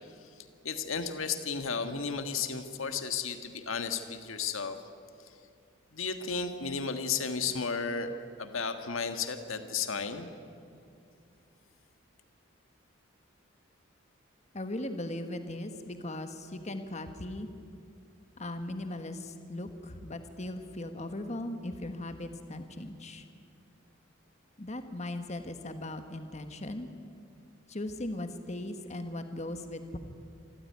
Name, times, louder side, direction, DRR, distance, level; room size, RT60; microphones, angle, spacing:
voice 1, 0.6-4.8 5.9-8.1 8.4-10.3, left 5 dB, 75° left, 8 dB, 1.6 m, -33 dB
voice 2, 14.5-17.5 18.4-23.2 24.6-26.9 27.7-30.0, left 1 dB, 35° left, 8 dB, 1.4 m, -38 dB
26.0 x 15.0 x 9.6 m, 2.4 s
head